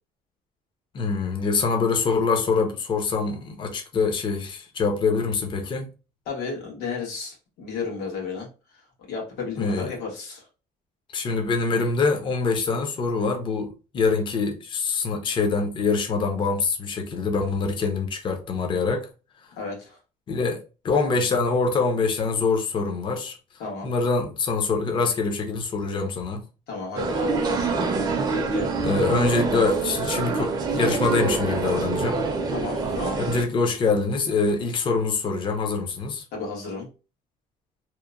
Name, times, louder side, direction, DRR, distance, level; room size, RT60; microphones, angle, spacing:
voice 1, 0.9-5.9 9.6-9.9 11.1-19.1 20.3-23.4 23.8-26.4 28.8-32.2 33.2-36.2, left 4 dB, 30° left, 0.5 m, -24 dB
voice 2, 6.3-8.5 9.1-10.5 19.6-20.0 23.6-23.9 26.7-27.7 28.3-28.7 32.5-33.2 36.3-36.9, left 4 dB, 90° left, 1.3 m, -33 dB
sound 1, 27.0-33.4, right 4 dB, 25° right, 0.5 m, -26 dB
2.8 x 2.0 x 2.4 m
cardioid pair, 160°, 16 cm